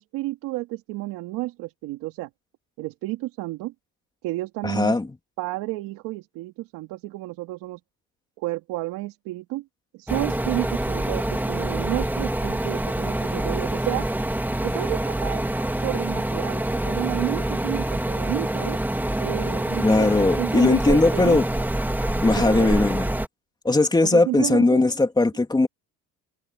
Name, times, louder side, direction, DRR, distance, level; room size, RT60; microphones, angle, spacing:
voice 1, 0.0-2.3 2.8-3.7 4.2-5.0 5.4-7.8 8.4-9.6 9.9-14.1 14.6-15.4 15.8-18.8 19.2-21.4 22.4-22.9 24.0-24.8, right 19 dB, 85° right, 2.9 m, -31 dB
voice 2, 4.6-5.1 19.8-21.5 22.2-23.1 23.6-25.7, left 2 dB, 15° left, 3.4 m, -19 dB
sound 1, 10.1-23.3, right 1 dB, 5° right, 2.7 m, -26 dB
cardioid pair, 115°, 32 cm